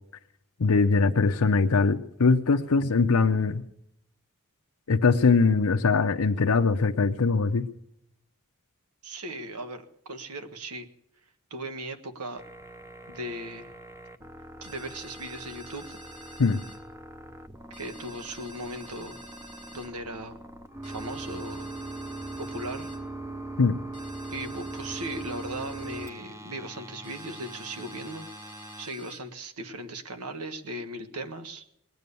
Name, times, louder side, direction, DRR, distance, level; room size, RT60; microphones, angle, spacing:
voice 1, 0.6-3.6 4.9-7.7 16.4-16.6 23.6-23.8, left 4 dB, 75° left, 4 dB, 0.7 m, -22 dB
voice 2, 9.0-10.9 11.5-12.4 13.1-13.7 14.6-16.0 17.8-19.2 19.7-20.4 20.8-21.7 22.4-22.9 24.3-28.3 28.8-31.6, right 1 dB, 85° right, 8 dB, 1.6 m, -38 dB
sound 1, 12.4-28.9, right 2 dB, 15° right, 0.8 m, -41 dB
sound 2, 14.6-16.8 17.7-19.9 20.8-23.0 23.9-26.1 27.0-29.2, right 1 dB, 35° right, 3.4 m, -49 dB
20.5 x 9.3 x 6.9 m, 0.80 s
head